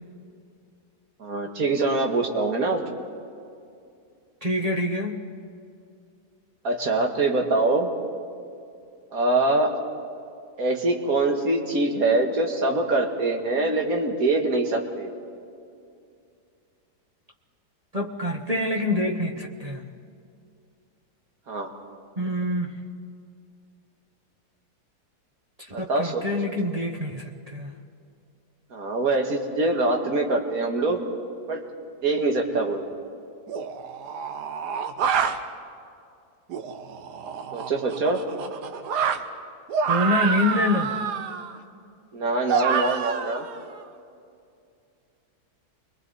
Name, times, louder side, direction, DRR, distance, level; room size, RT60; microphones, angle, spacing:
voice 1, 1.2-2.8 6.6-7.9 9.1-9.8 10.6-15.1 21.5-21.7 25.7-26.2 28.7-31.0 31.5-31.6 32.0-32.8 37.5-38.2 42.1-43.5, right 2 dB, 60° right, 3 dB, 2.1 m, -24 dB
voice 2, 4.4-5.2 17.9-19.8 22.2-22.8 25.8-27.7 39.9-40.9, left 1 dB, 25° right, 1 dB, 1.1 m, -26 dB
sound 1, 32.5-32.6 33.5-35.4 36.5-39.2 39.7-41.5 42.5-43.8, right 6 dB, 85° right, 1.5 m, -28 dB
28.5 x 22.0 x 4.1 m, 2.4 s
omnidirectional pair, 1.7 m